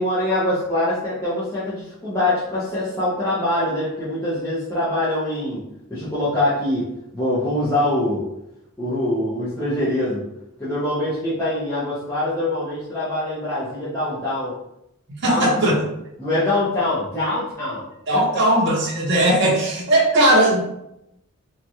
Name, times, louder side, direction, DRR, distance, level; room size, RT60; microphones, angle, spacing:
voice 1, 0.0-5.6 5.9-6.9 7.1-8.3 8.8-10.3 10.6-14.5 15.2-15.8 16.2-17.8 18.1-18.4, left 1 dB, 10° left, -12 dB, 0.6 m, -24 dB
voice 2, 15.2-15.7 18.1-20.6, right 1 dB, 50° right, -4 dB, 0.7 m, -18 dB
2.9 x 2.3 x 2.7 m, 0.83 s
head